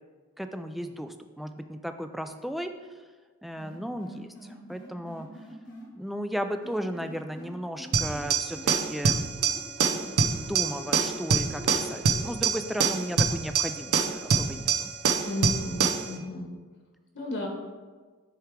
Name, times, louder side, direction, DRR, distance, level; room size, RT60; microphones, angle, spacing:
voice 1, 0.4-2.7 3.4-4.3 4.7-5.3 6.0-9.2 10.0-14.9, equal, ahead, 7 dB, 0.3 m, -35 dB
sound 1, 3.6-5.8 6.6-8.7 9.0-12.5, left 1 dB, 80° left, 2.3 m, -46 dB
sound 2, 7.9-16.1, right 5 dB, 80° right, 0.6 m, -25 dB
voice 2, 15.2-16.5 17.1-17.5, left 2 dB, 55° left, 0 dB, 1.4 m, -33 dB
10.0 x 3.5 x 4.7 m, 1.4 s
head